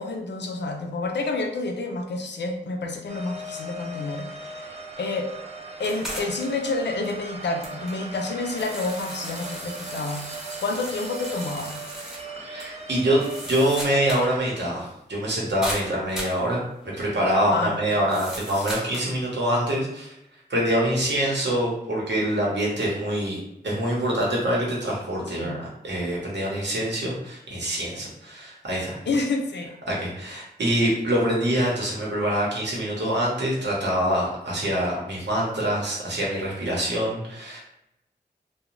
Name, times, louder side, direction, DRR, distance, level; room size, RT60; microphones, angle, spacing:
voice 1, 0.0-5.3 5.8-11.8 17.5-17.8 25.3-25.6 29.1-29.7 30.3-30.4, left 3 dB, 85° left, 4 dB, 0.4 m, -29 dB
sound 1, 3.1-14.4, right 2 dB, 40° right, 0.4 m, -39 dB
sound 2, 5.8-6.7 7.0-7.1 7.6-12.3 12.6-12.7 13.0-14.3 14.6-14.7 15.6-16.4 18.1-19.1, equal, ahead, 0.8 m, -37 dB
voice 2, 12.4-20.1 20.5-29.0 29.9-37.6, right 1 dB, 85° right, -4 dB, 0.9 m, -25 dB
2.5 x 2.2 x 3.0 m, 0.87 s
wide cardioid pair, 55°, 18 cm